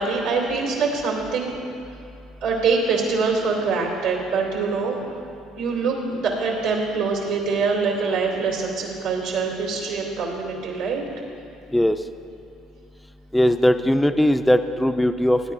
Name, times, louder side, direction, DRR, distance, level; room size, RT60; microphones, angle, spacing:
voice 1, 0.0-1.5 2.4-5.0 5.6-11.1, right 4 dB, 85° right, -2 dB, 2.7 m, -24 dB
voice 2, 13.3-15.5, equal, 5° left, 9 dB, 0.5 m, -19 dB
19.0 x 9.7 x 2.6 m, 2.6 s
supercardioid pair, 75°, 0 cm